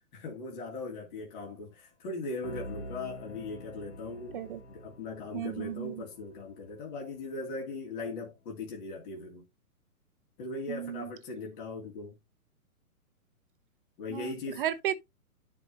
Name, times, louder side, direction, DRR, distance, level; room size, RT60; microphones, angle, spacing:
voice 1, 0.1-4.4 4.7-9.5 10.4-12.2 14.0-14.6, left 3 dB, 35° left, 2.4 m, -39 dB
sound 1, 2.4-8.0, left 1 dB, 55° left, 2.3 m, -47 dB
voice 2, 5.3-6.0 10.7-11.1 14.1-14.9, right 11 dB, 35° right, 0.8 m, -34 dB
12.0 x 5.0 x 2.7 m
hypercardioid pair, 150°, 44 cm